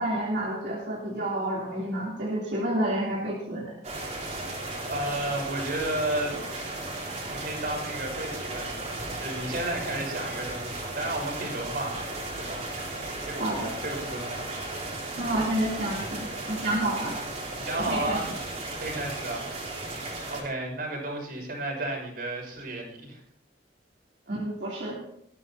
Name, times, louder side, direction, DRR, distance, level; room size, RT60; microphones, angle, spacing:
voice 1, 0.0-3.7 13.4-13.7 15.2-17.2 17.8-18.2 24.3-25.0, right 1 dB, 75° right, -5 dB, 3.3 m, -29 dB
sound 1, 3.8-20.4, right 2 dB, 40° right, 3.9 m, -35 dB
voice 2, 4.9-6.3 7.3-12.1 12.4-12.6 13.2-15.1 17.6-18.3 18.8-19.5 19.8-23.2, right 1 dB, 60° right, 1 dB, 6.0 m, -33 dB
20.5 x 14.5 x 2.9 m, 0.74 s
head